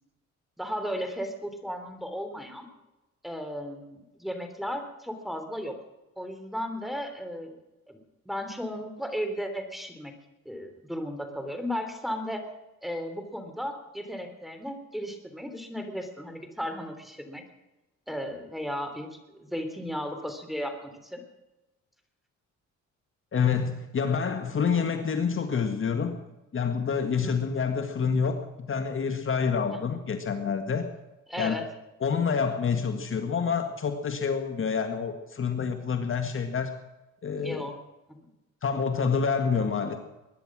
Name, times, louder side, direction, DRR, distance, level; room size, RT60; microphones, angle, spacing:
voice 1, 0.6-2.7 3.2-5.8 6.2-7.6 7.9-8.0 8.3-10.1 10.5-12.4 12.8-17.4 18.1-21.2 27.1-27.4 29.7-29.8 31.3-31.6 37.4-37.7 38.1-38.3, equal, ahead, 6 dB, 3.4 m, -35 dB
voice 2, 23.3-26.2 26.5-30.9 31.4-31.6 32.0-36.7 37.2-37.7 38.6-40.0, left 6 dB, 45° left, 7 dB, 1.8 m, -27 dB
22.0 x 10.5 x 6.2 m, 1.0 s
cardioid pair, 90°, 30 cm